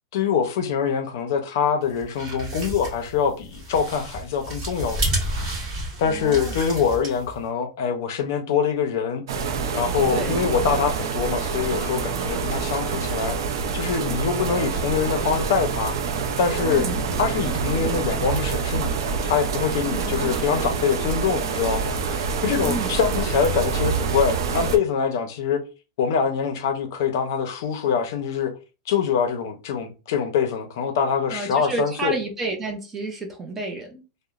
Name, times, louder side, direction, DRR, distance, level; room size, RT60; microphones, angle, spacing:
voice 1, 0.1-5.1 6.0-9.2 9.7-13.4 13.7-16.0 16.4-16.9 17.2-25.6 26.0-28.5 28.9-32.2, left 6 dB, 55° left, 0.5 m, -24 dB
sound 1, 1.9-7.4, right 1 dB, 35° right, 1.3 m, -31 dB
voice 2, 6.1-6.5 10.1-10.4 16.7-17.0 19.9-20.4 22.6-22.9 31.3-34.0, right 2 dB, 15° right, 0.4 m, -31 dB
sound 2, 9.3-24.8, right 5 dB, 85° right, 0.4 m, -26 dB
2.9 x 2.0 x 2.3 m
supercardioid pair, 175°, 2 cm